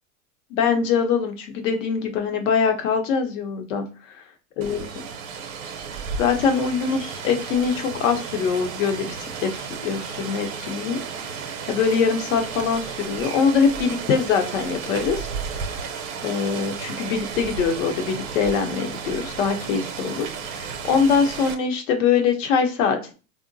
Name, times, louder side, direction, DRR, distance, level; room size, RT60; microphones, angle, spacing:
voice 1, 0.5-3.8 4.6-5.0 6.2-11.0 11.7-15.8 16.2-23.1, left 6 dB, 70° left, 5 dB, 0.7 m, -23 dB
Rain, 4.6-21.6, right 6 dB, 80° right, 0.7 m, -33 dB
3.7 x 2.0 x 2.5 m, 0.34 s
supercardioid pair, 165°, 40 cm